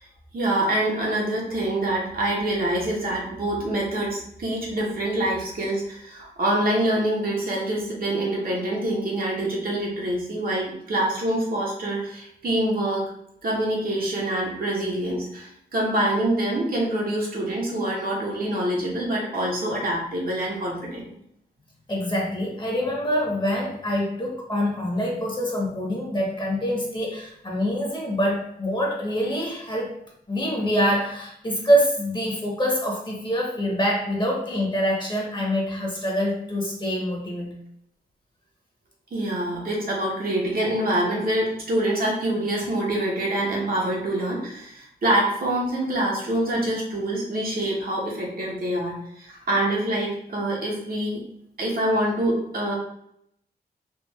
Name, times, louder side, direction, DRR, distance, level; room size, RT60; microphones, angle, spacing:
voice 1, 0.3-13.0 13.4-21.1 39.1-51.2 51.6-52.7, right 1 dB, 65° right, -4 dB, 1.2 m, -25 dB
voice 2, 21.9-29.9 30.3-37.6, equal, 30° left, -2 dB, 1.2 m, -25 dB
3.4 x 2.5 x 3.3 m, 0.74 s
wide cardioid pair, 95°, 16 cm